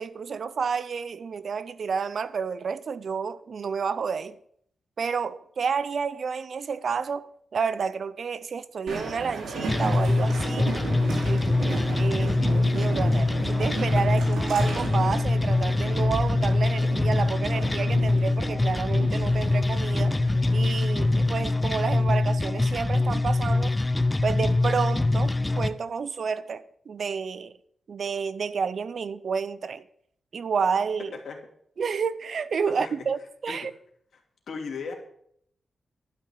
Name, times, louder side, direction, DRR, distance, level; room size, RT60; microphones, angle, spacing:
voice 1, 0.0-4.4 5.0-10.8 11.3-20.2 20.5-23.8 24.2-27.5 27.9-29.8 30.3-31.2 31.8-33.7, right 6 dB, 55° right, 0.5 m, -30 dB
Train, 8.9-21.4, right 3 dB, 90° right, 3.0 m, -35 dB
sound 1, 9.7-25.7, left 2 dB, 15° left, 0.5 m, -24 dB
voice 2, 32.7-33.1 33.5-33.7 34.5-34.9, left 5 dB, 70° left, 2.8 m, -36 dB
12.0 x 5.8 x 8.7 m
wide cardioid pair, 145°, 0 cm